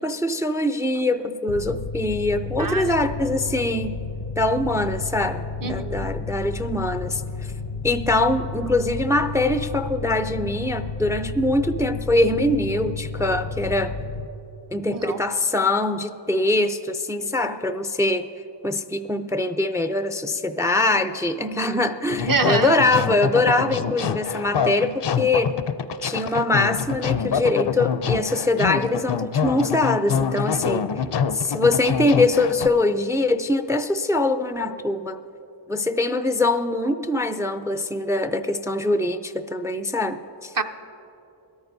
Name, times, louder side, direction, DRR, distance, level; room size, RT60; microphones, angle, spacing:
voice 1, 0.0-4.0 4.4-7.5 7.8-13.9 14.7-18.3 18.6-25.6 26.0-30.9 31.3-35.2 35.7-40.5, left 2 dB, 5° right, 9 dB, 0.3 m, -23 dB
Mechanical fan, 1.5-14.2, left 4 dB, 90° left, 0.8 m, -32 dB
voice 2, 2.6-2.9 5.6-6.1 14.9-15.2 22.2-22.7 40.6-40.7, right 4 dB, 45° right, 7 dB, 0.7 m, -25 dB
sound 1, 22.1-32.7, left 7 dB, 60° left, 0.5 m, -25 dB
21.5 x 13.5 x 2.7 m, 2.9 s
wide cardioid pair, 90°, 47 cm